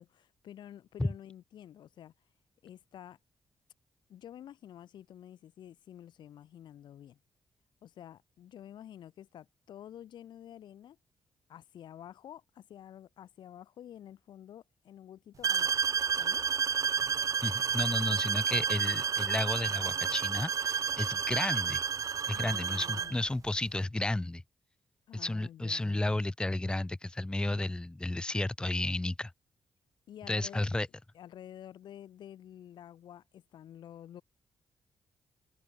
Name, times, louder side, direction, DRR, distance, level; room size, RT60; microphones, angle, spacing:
voice 1, 0.0-2.1 2.6-3.2 4.1-7.2 7.8-11.0 11.5-16.5 22.3-23.2 25.1-26.2 30.1-30.7 31.1-34.2, left 10 dB, 80° left, 0.8 m, -50 dB
sound 1, 15.4-23.2, right 7 dB, 45° right, 0.3 m, -30 dB
voice 2, 17.4-21.8 22.3-24.4 25.1-29.3 30.3-30.9, left 2 dB, 10° left, 0.6 m, -32 dB
cardioid pair, 75°, 8 cm